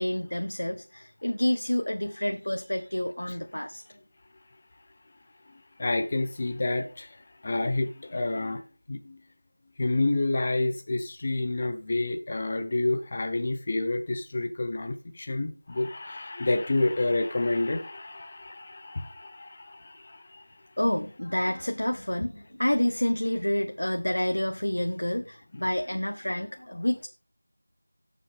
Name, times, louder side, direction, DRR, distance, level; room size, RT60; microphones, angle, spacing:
voice 1, 0.0-3.8 20.8-27.1, left 1 dB, 85° left, 1.0 m, -28 dB
voice 2, 5.5-8.6 8.9-9.2 9.8-20.5 25.5-25.7, left 2 dB, 15° left, 0.5 m, -29 dB
16.0 x 7.2 x 3.5 m
figure-of-eight pair, 180°, 0 cm